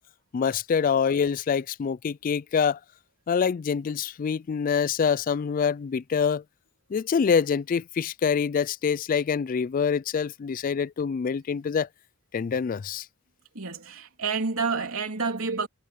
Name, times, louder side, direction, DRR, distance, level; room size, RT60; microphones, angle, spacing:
voice 1, 0.3-2.8 3.3-6.4 6.9-11.9 12.3-13.1, left 6 dB, 40° left, 0.3 m, -25 dB
voice 2, 13.5-15.7, right 4 dB, 80° right, 3.4 m, -29 dB
head